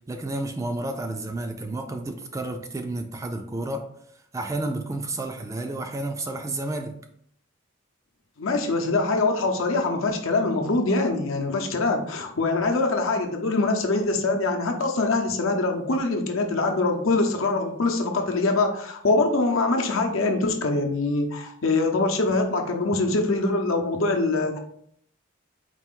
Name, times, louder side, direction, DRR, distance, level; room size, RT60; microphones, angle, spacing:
voice 1, 0.1-3.9 4.3-7.0, right 2 dB, 15° right, 5 dB, 0.3 m, -31 dB
voice 2, 8.4-24.6, left 3 dB, 80° left, 3 dB, 0.7 m, -24 dB
4.4 x 2.5 x 3.7 m, 0.66 s
head